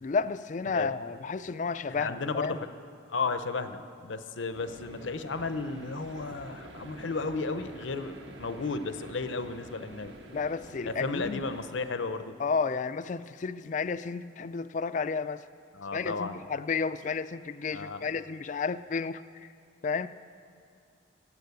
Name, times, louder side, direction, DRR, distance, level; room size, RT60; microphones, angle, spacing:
voice 1, 0.0-2.6 10.3-11.4 12.4-15.4 15.9-19.2 19.8-20.1, left 5 dB, 40° left, 14 dB, 0.3 m, -32 dB
voice 2, 0.7-1.0 1.9-2.7 3.1-10.1 10.8-12.3 15.7-16.4 17.7-18.0, left 3 dB, 75° left, 10 dB, 0.8 m, -34 dB
sound 1, 4.5-11.7, right 1 dB, 65° right, 1.4 m, -48 dB
15.5 x 8.8 x 8.2 m, 2.4 s
head